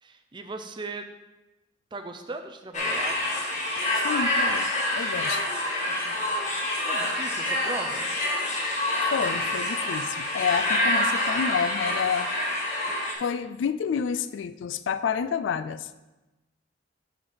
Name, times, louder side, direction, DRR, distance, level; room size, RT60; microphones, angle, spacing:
voice 1, 0.0-1.1 1.9-3.2 5.9-6.1 6.8-8.1, right 3 dB, 25° right, 6 dB, 0.5 m, -38 dB
sound 1, 2.7-13.1, left 1 dB, 40° left, 1.4 m, -27 dB
voice 2, 4.0-5.5 9.1-12.3 13.2-15.9, left 7 dB, 80° left, 14 dB, 0.3 m, -29 dB
6.8 x 5.1 x 5.6 m, 1.1 s
head